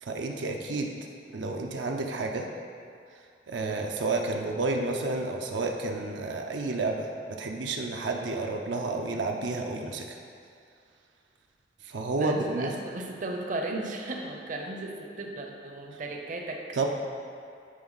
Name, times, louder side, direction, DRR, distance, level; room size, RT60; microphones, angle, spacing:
voice 1, 0.0-0.9 1.3-2.5 3.5-7.1 7.4-10.2 11.8-12.8 16.7-16.9, right 3 dB, 85° right, 2 dB, 0.6 m, -30 dB
voice 2, 12.2-16.6, right 2 dB, 45° right, 2 dB, 0.7 m, -35 dB
9.3 x 4.4 x 4.0 m, 2.4 s
head